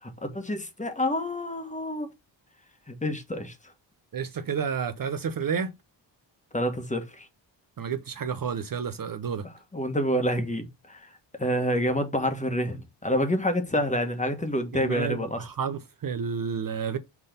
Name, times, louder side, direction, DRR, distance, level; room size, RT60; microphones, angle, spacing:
voice 1, 0.2-2.1 2.9-3.5 6.5-7.3 9.7-11.1 11.4-15.4, equal, 15° left, 1.4 m, -28 dB
voice 2, 4.1-5.7 7.8-9.5 14.7-17.0, right 6 dB, 45° right, 0.7 m, -30 dB
6.0 x 3.9 x 5.0 m
wide cardioid pair, 130°, 45 cm